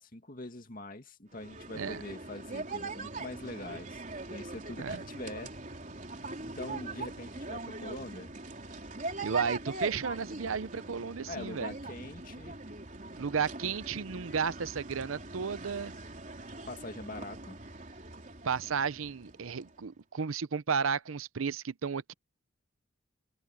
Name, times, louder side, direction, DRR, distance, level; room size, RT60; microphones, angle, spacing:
voice 1, 0.0-4.0 4.3-5.5 6.6-8.3 11.2-12.6 16.7-17.6, left 2 dB, 45° left, 2.3 m, -43 dB
sound 1, 1.3-19.8, right 2 dB, 40° right, 4.3 m, -42 dB
voice 2, 9.2-11.7 13.2-15.9 18.4-22.1, right 6 dB, 90° right, 0.7 m, -33 dB
open air
head